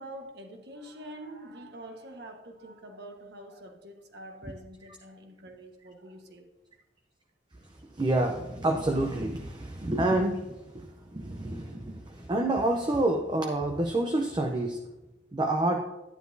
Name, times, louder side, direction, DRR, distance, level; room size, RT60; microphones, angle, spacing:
voice 1, 0.0-6.5, right 1 dB, 65° right, 4 dB, 1.3 m, -45 dB
voice 2, 8.0-14.8 15.3-15.8, right 1 dB, 25° right, 3 dB, 0.6 m, -28 dB
11.5 x 10.0 x 2.7 m, 1.0 s
head